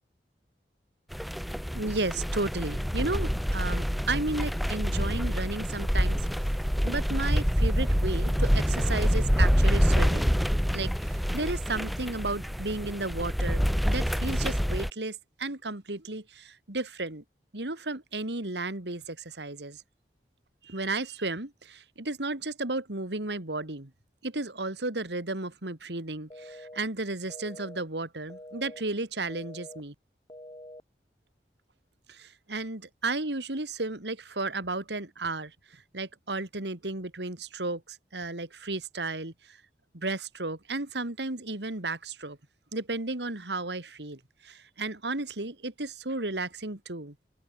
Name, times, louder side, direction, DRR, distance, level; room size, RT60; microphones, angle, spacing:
sound 1, 1.1-14.9, equal, ahead, 1.6 m, -26 dB
voice 1, 1.7-6.6 6.8-10.4 10.7-17.2 17.5-19.8 20.6-23.9 24.2-29.9 32.1-39.3 39.9-42.4 42.7-47.1, right 2 dB, 80° right, 2.7 m, -33 dB
sound 2, 26.3-26.8 27.3-27.8 28.3-28.8 29.3-29.8 30.3-30.8, left 1 dB, 25° left, 3.9 m, -45 dB
open air
head